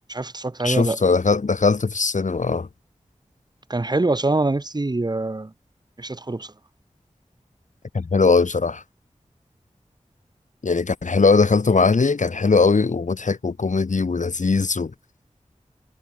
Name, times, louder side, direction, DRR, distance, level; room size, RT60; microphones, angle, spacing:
voice 1, 0.1-1.0 3.7-5.5 6.0-6.5, right 2 dB, 35° right, 1.3 m, -24 dB
voice 2, 0.6-2.7 7.9-8.8 10.6-14.9, left 4 dB, 80° left, 2.2 m, -20 dB
wide cardioid pair, 55°, 13 cm